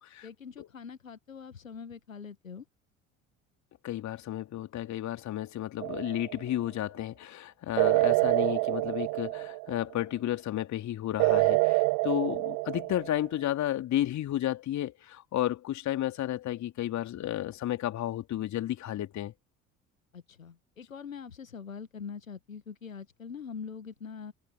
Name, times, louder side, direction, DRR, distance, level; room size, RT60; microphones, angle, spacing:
voice 1, 0.2-2.6 20.1-24.3, left 6 dB, 85° left, 1.6 m, -43 dB
voice 2, 3.8-19.3, left 13 dB, 45° left, 3.2 m, -32 dB
sound 1, 5.8-6.4 7.8-9.8 11.2-13.3, right 26 dB, 50° right, 1.0 m, -26 dB
figure-of-eight pair, 60°, 39 cm